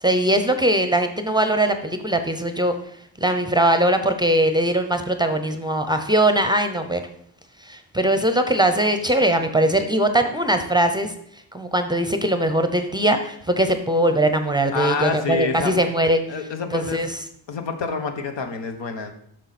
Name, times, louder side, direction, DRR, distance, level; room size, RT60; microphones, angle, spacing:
voice 1, 0.0-2.7 3.2-7.1 7.6-11.1 11.5-16.2 16.7-17.1, right 1 dB, 10° right, 8 dB, 0.6 m, -21 dB
voice 2, 14.7-15.7 16.3-17.0 17.5-19.1, left 5 dB, 75° left, 6 dB, 1.2 m, -27 dB
9.2 x 6.5 x 4.2 m, 0.70 s
cardioid pair, 110°, 44 cm